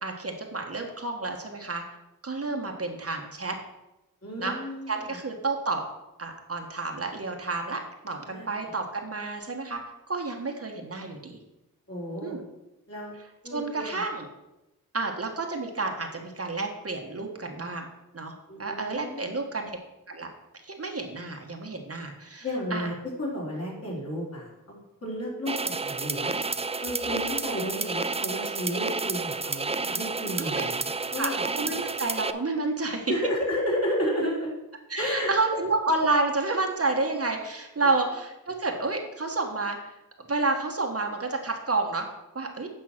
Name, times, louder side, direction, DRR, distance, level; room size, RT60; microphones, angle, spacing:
voice 1, 0.0-1.8 2.2-3.6 4.4-4.6 4.9-5.8 6.2-9.8 10.1-11.4 12.2-12.4 13.5-14.3 14.9-17.9 18.1-19.8 20.1-20.3 20.6-22.4 22.7-22.9 30.4-30.7 31.2-31.3 31.6-33.1 34.9-39.9 40.3-42.1 42.3-42.7, right 3 dB, 45° right, 2 dB, 1.3 m, -30 dB
voice 2, 4.2-5.2 8.3-8.5 11.9-12.4 12.9-13.1 13.4-14.0 18.5-19.3 22.4-26.4 26.8-31.4 33.1-34.5 35.0-35.3 37.8-38.0, equal, 45° left, -4 dB, 3.9 m, -32 dB
sound 1, 25.5-32.3, right 4 dB, 20° right, 0.4 m, -30 dB
8.8 x 5.6 x 5.9 m, 0.94 s
wide cardioid pair, 75°, 35 cm